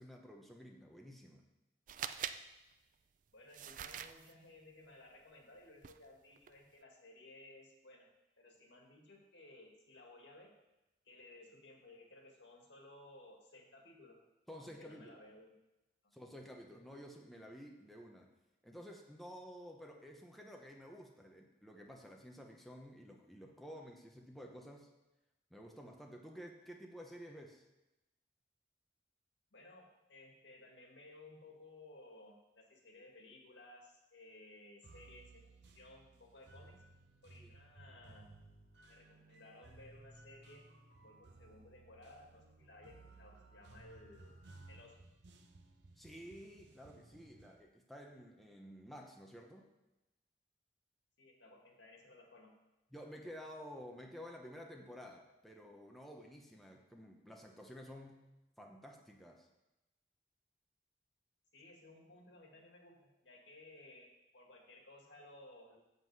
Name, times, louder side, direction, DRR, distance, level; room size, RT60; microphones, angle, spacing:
voice 1, 0.0-1.4 14.5-15.2 16.1-18.3 18.6-24.9 25.5-27.6 37.4-37.6 46.0-49.7 52.9-58.2 58.6-59.5, equal, ahead, 0 dB, 0.8 m, -52 dB
sound 1, 1.9-2.4 3.5-4.3 5.8-6.0 6.4-6.6, right 9 dB, 45° right, 0.4 m, -43 dB
voice 2, 3.3-8.1 8.4-10.5 11.1-14.2 14.5-15.5 16.0-16.1 29.5-36.8 37.2-38.3 38.9-40.7 41.0-44.4 44.7-45.0 51.2-52.5 61.5-65.8, left 2 dB, 85° left, 1 dB, 1.9 m, -58 dB
sound 2, 34.8-47.6, right 2 dB, 75° right, 0.8 m, -59 dB
8.0 x 7.5 x 4.7 m, 0.97 s
head